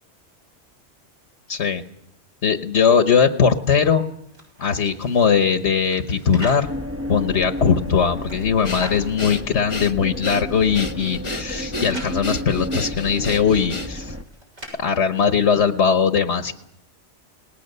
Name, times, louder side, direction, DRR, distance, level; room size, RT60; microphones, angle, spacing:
voice 1, 1.5-1.8 2.4-4.0 4.6-6.7 7.1-14.1 14.8-16.5, left 6 dB, 75° left, 8 dB, 1.4 m, -20 dB
sound 1, 4.2-6.7 7.4-9.1 9.7-9.8 10.0-10.1 10.4-12.1 13.0-14.7, right 1 dB, 75° right, 7.3 m, -42 dB
sound 2, 6.6-14.2, left 1 dB, 15° right, 0.8 m, -32 dB
Breathing, 8.6-14.2, left 2 dB, 25° left, 1.1 m, -32 dB
27.5 x 19.5 x 6.7 m, 0.78 s
omnidirectional pair, 1.2 m